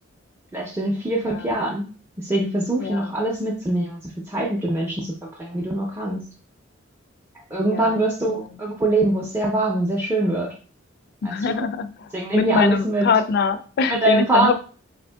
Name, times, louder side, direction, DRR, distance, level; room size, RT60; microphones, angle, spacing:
voice 1, 0.5-1.8 2.2-4.0 4.3-6.3 7.5-10.5 11.2-11.7 12.1-13.1 13.9-14.5, right 1 dB, 10° right, -3 dB, 0.4 m, -23 dB
voice 2, 2.8-3.1 7.7-8.0 8.3-8.6 11.2-14.5, left 5 dB, 55° left, 11 dB, 0.3 m, -24 dB
4.3 x 2.6 x 2.2 m, 0.39 s
head